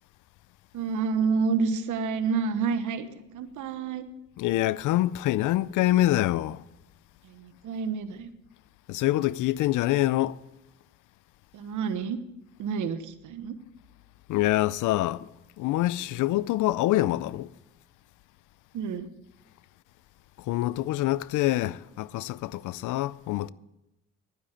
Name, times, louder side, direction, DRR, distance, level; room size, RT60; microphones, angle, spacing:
voice 1, 0.7-3.1 3.3-4.0 7.2-8.3 11.5-12.2 12.6-13.6 18.7-19.1, right 5 dB, 80° right, 1.2 m, -29 dB
voice 2, 4.4-6.6 8.9-10.4 14.3-15.3 15.6-17.5 20.5-23.5, left 15 dB, 80° left, 0.5 m, -25 dB
11.0 x 10.0 x 7.4 m
cardioid pair, 90°, 30 cm